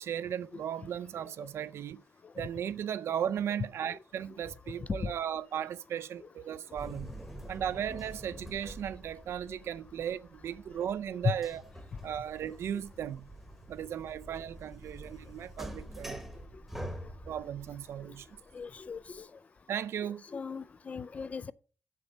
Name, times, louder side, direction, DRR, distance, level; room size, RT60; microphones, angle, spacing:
voice 1, 0.0-2.0 2.4-7.1 7.5-11.6 12.0-13.3 13.7-16.2 17.3-18.3 19.7-20.2, right 9 dB, 75° right, 0.4 m, -36 dB
voice 2, 4.8-5.1 18.5-19.3 20.3-21.5, left 5 dB, 30° left, 0.3 m, -38 dB
sound 1, 6.8-19.2, right 1 dB, 5° right, 1.0 m, -46 dB
7.2 x 6.7 x 5.3 m
wide cardioid pair, 165°, 4 cm